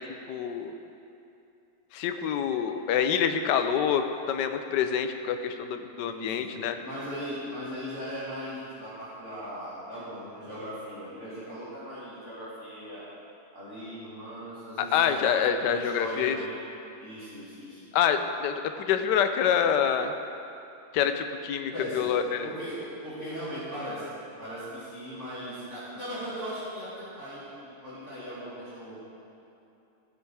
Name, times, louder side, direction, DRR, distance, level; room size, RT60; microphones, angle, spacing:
voice 1, 0.3-0.7 1.9-6.8 14.9-16.4 17.9-20.1 20.9-22.5, left 8 dB, 70° left, 8 dB, 1.1 m, -26 dB
voice 2, 6.0-13.0 13.5-16.6 17.0-17.8 21.7-22.1 22.4-22.8 23.0-24.1 24.4-28.9, equal, 35° right, -13 dB, 3.0 m, -38 dB
15.0 x 6.6 x 4.8 m, 2.7 s
omnidirectional pair, 2.2 m